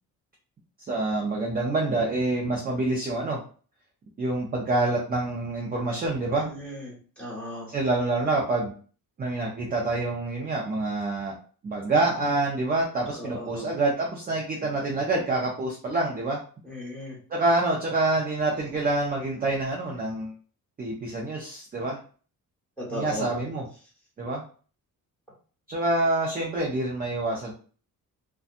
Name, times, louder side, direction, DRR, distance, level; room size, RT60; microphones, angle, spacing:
voice 1, 0.9-3.4 4.2-6.5 7.7-8.7 9.2-11.4 11.6-16.4 17.3-20.3 20.8-22.0 22.9-23.6 24.2-24.4 25.7-27.5, right 2 dB, 25° right, -2 dB, 0.5 m, -26 dB
voice 2, 6.4-7.7 13.2-13.7 16.6-17.2 22.8-23.3, equal, 5° left, -7 dB, 1.4 m, -36 dB
2.6 x 2.2 x 2.5 m, 0.40 s
cardioid pair, 155°, 35 cm